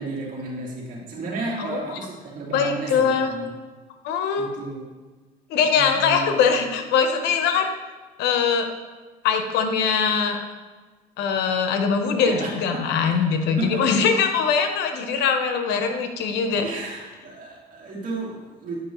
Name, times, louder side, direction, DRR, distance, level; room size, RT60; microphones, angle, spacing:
voice 1, 0.0-3.5 4.4-4.9 5.6-6.4 12.3-12.5 13.0-13.2 13.6-13.8 16.6-18.9, right 3 dB, 50° right, -4 dB, 2.3 m, -33 dB
voice 2, 2.5-3.3 4.0-4.5 5.5-7.7 8.2-8.7 9.2-10.4 11.2-16.7, left 6 dB, 90° left, 6 dB, 0.8 m, -22 dB
9.3 x 5.4 x 3.0 m, 1.3 s
cardioid pair, 110°, 17 cm